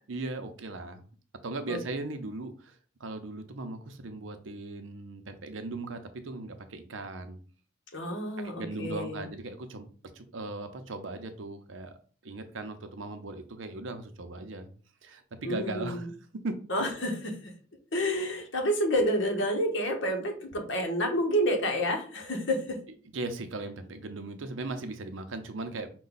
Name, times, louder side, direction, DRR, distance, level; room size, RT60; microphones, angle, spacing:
voice 1, 0.1-1.0 1.4-2.7 3.0-7.4 8.6-9.9 10.1-12.0 12.2-14.7 15.0-16.1 16.4-16.5 23.1-25.9, right 2 dB, 70° right, 8 dB, 0.7 m, -38 dB
voice 2, 7.9-9.2 15.4-16.1 16.7-17.4 17.9-22.8, equal, 65° left, 3 dB, 1.1 m, -29 dB
5.3 x 2.3 x 3.9 m, 0.42 s
head